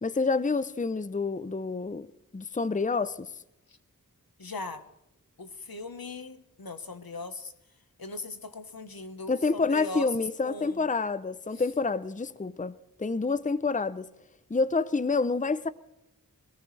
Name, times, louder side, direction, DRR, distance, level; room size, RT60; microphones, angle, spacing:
voice 1, 0.0-2.1 2.3-3.3 9.3-14.1 14.5-15.7, left 4 dB, 20° left, 0.6 m, -28 dB
voice 2, 4.4-4.8 5.4-7.5 8.0-10.1 10.4-10.8 11.5-11.6, left 2 dB, 85° left, 1.2 m, -39 dB
22.0 x 18.5 x 3.3 m
wide cardioid pair, 50°, 35 cm